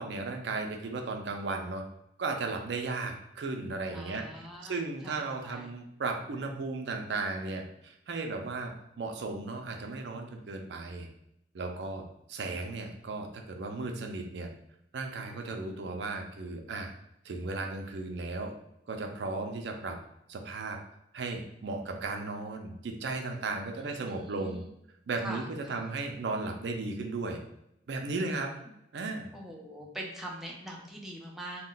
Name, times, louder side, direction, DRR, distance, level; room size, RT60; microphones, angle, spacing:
voice 1, 0.0-1.8 2.2-4.3 4.7-11.1 11.5-14.5 14.9-16.9 17.2-18.5 18.9-20.0 20.3-20.8 21.1-24.6 25.1-27.4 27.9-28.5 28.9-29.3, right 3 dB, 70° right, 3 dB, 0.4 m, -35 dB
voice 2, 3.9-5.7 23.9-24.7 25.2-25.9 28.6-28.7 29.3-31.6, right 1 dB, ahead, -3 dB, 0.4 m, -43 dB
2.2 x 2.2 x 3.8 m, 0.80 s
head